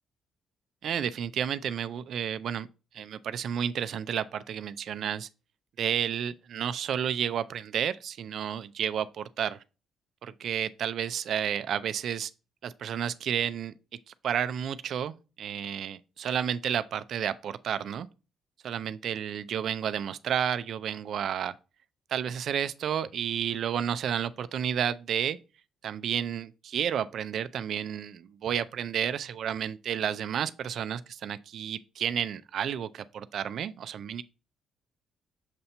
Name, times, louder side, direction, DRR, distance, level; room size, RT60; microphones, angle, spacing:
voice 1, 0.8-2.7 2.9-5.3 5.8-9.6 10.2-12.3 12.6-13.7 14.2-18.1 18.6-21.5 22.1-25.4 25.8-34.2, right 9 dB, 65° right, 0.3 m, -31 dB
6.7 x 2.8 x 5.3 m
cardioid pair, 90°, 0 cm